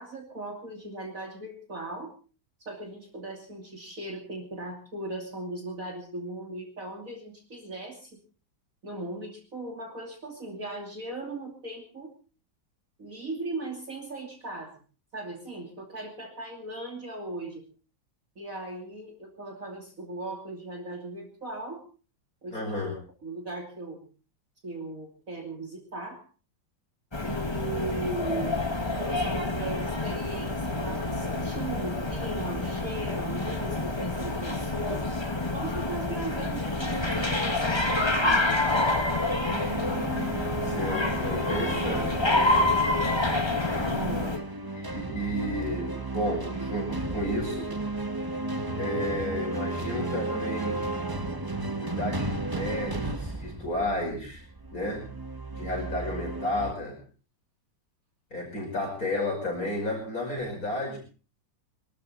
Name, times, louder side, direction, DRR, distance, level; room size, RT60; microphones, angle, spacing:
voice 1, 0.0-2.1 2.6-8.2 8.8-12.1 13.0-14.8 15.1-17.6 18.4-21.8 22.4-22.7 23.2-24.1 24.6-26.2 27.2-35.1 35.5-38.6 43.7-44.3, right 2 dB, 45° right, 1 dB, 3.1 m, -38 dB
voice 2, 22.5-23.0 40.6-42.8 44.7-47.7 48.7-50.9 51.8-54.4 54.7-55.0 55.5-57.0 58.3-61.0, left 1 dB, 45° left, -1 dB, 6.1 m, -32 dB
sound 1, 27.1-44.4, left 2 dB, 15° left, 1.8 m, -28 dB
sound 2, 39.4-56.7, right 2 dB, 15° right, 0.9 m, -33 dB
24.5 x 12.5 x 4.2 m, 0.37 s
omnidirectional pair, 2.1 m